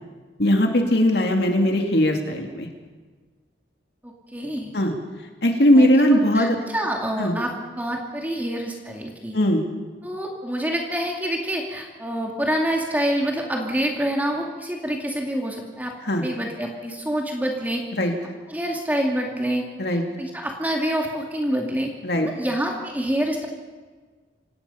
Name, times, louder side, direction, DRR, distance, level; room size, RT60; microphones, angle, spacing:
voice 1, 0.4-2.7 4.7-5.0 5.4-6.6 7.2-7.3 9.3-9.6 16.1-16.2 17.9-18.1 19.8-20.0 22.0-22.3, equal, 65° left, 3 dB, 2.5 m, -19 dB
voice 2, 4.0-4.8 5.8-9.4 10.0-17.8 18.5-21.9 22.2-23.5, right 1 dB, 10° right, 0 dB, 2.3 m, -27 dB
26.5 x 18.0 x 5.7 m, 1.4 s
head